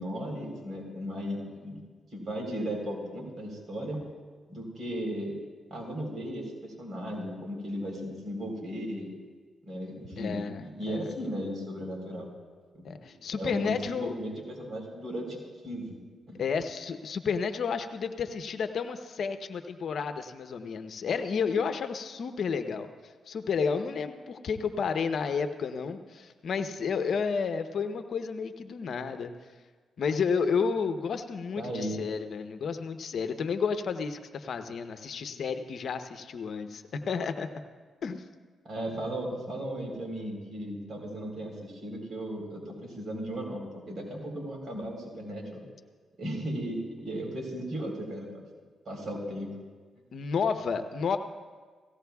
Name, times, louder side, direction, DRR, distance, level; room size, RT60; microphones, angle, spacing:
voice 1, 0.0-1.8 2.1-4.0 4.5-5.3 5.7-9.1 9.6-12.3 12.7-12.9 13.4-15.4 15.6-16.0 16.3-16.4 31.6-32.0 38.7-45.6 46.2-48.3 48.9-49.5, equal, 55° right, 0 dB, 3.9 m, -36 dB
voice 2, 10.2-11.1 12.8-14.1 16.4-22.9 23.3-29.3 30.0-37.5 38.0-38.3 50.1-51.2, left 5 dB, 65° left, 8 dB, 0.8 m, -31 dB
18.0 x 16.0 x 2.3 m, 1.5 s
cardioid pair, 60°, 0 cm